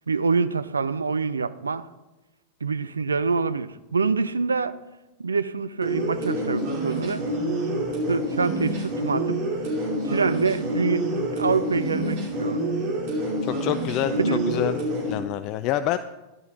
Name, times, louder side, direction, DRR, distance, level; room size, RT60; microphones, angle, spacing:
voice 1, 0.1-1.9 2.6-4.7 5.2-7.2 8.1-9.4 10.0-12.6 14.2-14.5, right 4 dB, 75° right, 13 dB, 0.6 m, -25 dB
sound 1, 5.8-15.1, right 1 dB, 50° right, 4.7 m, -27 dB
voice 2, 13.5-14.8 15.1-16.0, left 12 dB, 40° left, 12 dB, 0.5 m, -27 dB
14.5 x 12.0 x 3.9 m, 1.0 s
figure-of-eight pair, 90°, 0 cm